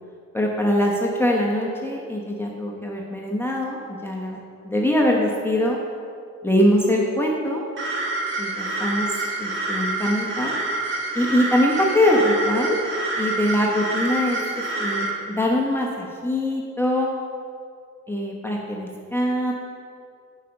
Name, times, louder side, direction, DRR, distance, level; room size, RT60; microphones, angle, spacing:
voice 1, 0.3-5.8 6.4-7.6 8.4-10.5 11.1-12.8 13.2-14.4 14.8-17.1 18.1-19.5, left 1 dB, 10° left, -2 dB, 1.0 m, -23 dB
sound 1, 7.8-15.1, right 2 dB, 40° right, 1.8 m, -27 dB
9.2 x 5.2 x 5.2 m, 2.4 s
cardioid pair, 90°, 30 cm